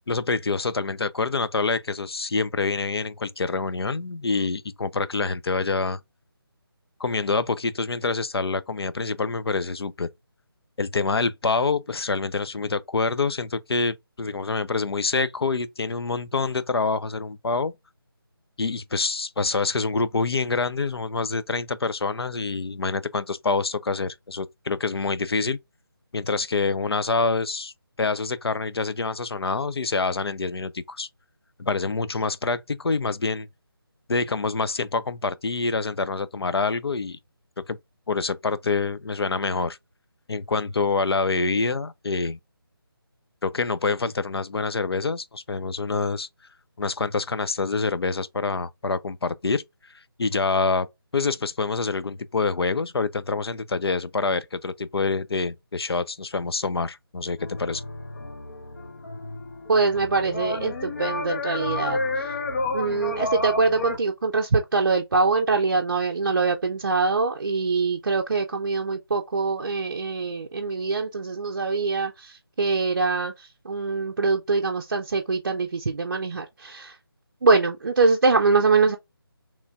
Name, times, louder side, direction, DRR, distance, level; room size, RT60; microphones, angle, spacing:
voice 1, 0.1-6.0 7.0-10.1 10.8-17.7 18.6-25.6 26.1-27.7 28.0-31.1 31.6-33.5 34.1-37.2 37.7-37.8 38.1-39.8 40.3-42.4 43.4-46.3 46.8-49.6 50.2-50.9 51.1-57.8, left 4 dB, 85° left, 0.5 m, -26 dB
sound 1, 57.4-64.0, left 2 dB, 45° left, 0.8 m, -31 dB
voice 2, 59.7-62.3 62.7-76.9 77.4-79.0, right 4 dB, 50° right, 0.5 m, -23 dB
3.1 x 2.6 x 3.3 m
figure-of-eight pair, 165°, 13 cm